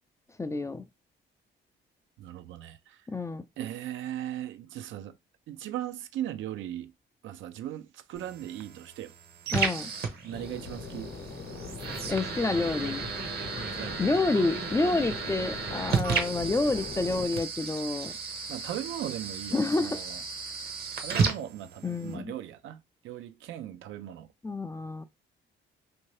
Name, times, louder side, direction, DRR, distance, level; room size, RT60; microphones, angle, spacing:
voice 1, 0.4-0.9 3.1-3.5 9.5-9.9 12.1-13.0 14.0-18.1 19.5-20.0 21.8-22.3 24.4-25.0, left 3 dB, 15° left, 0.3 m, -28 dB
voice 2, 2.2-3.1 3.6-5.2 5.5-6.9 7.2-9.1 10.2-11.1 13.8-14.0 18.5-20.2 21.0-24.3, right 12 dB, 75° right, 0.5 m, -38 dB
sound 1, 8.1-22.1, right 5 dB, 55° right, 0.9 m, -34 dB
sound 2, 10.3-17.3, left 6 dB, 55° left, 0.8 m, -41 dB
2.7 x 2.7 x 3.1 m
cardioid pair, 90°, 20 cm